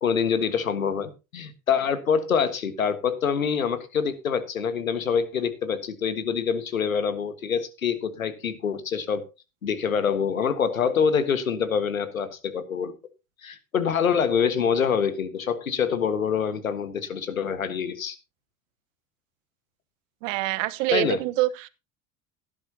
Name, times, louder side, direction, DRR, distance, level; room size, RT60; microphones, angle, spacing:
voice 1, 0.0-9.3 9.6-12.9 13.4-18.2 20.9-21.2, left 7 dB, 90° left, 1.6 m, -25 dB
voice 2, 20.2-21.7, right 18 dB, 65° right, 1.1 m, -25 dB
17.0 x 10.5 x 2.8 m
hypercardioid pair, 65°, 40 cm